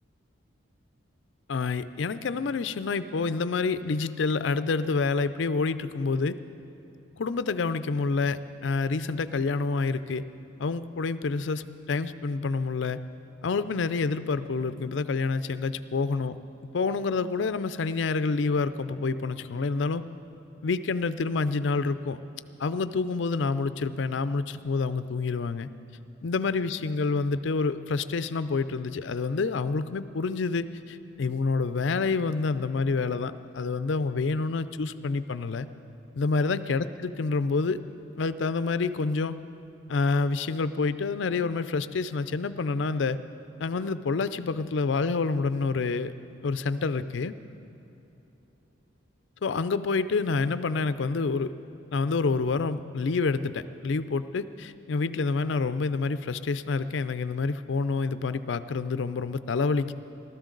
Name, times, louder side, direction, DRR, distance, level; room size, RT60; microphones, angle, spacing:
voice 1, 1.5-6.4 7.2-10.2 10.6-13.0 13.4-16.4 16.7-20.0 20.6-22.2 22.6-25.7 26.2-35.7 36.1-37.8 38.2-39.4 39.9-43.2 43.6-46.1 46.4-47.3 49.4-51.5 51.9-59.9, left 4 dB, 65° left, 13 dB, 0.4 m, -28 dB
20.5 x 13.0 x 3.9 m, 3.0 s
head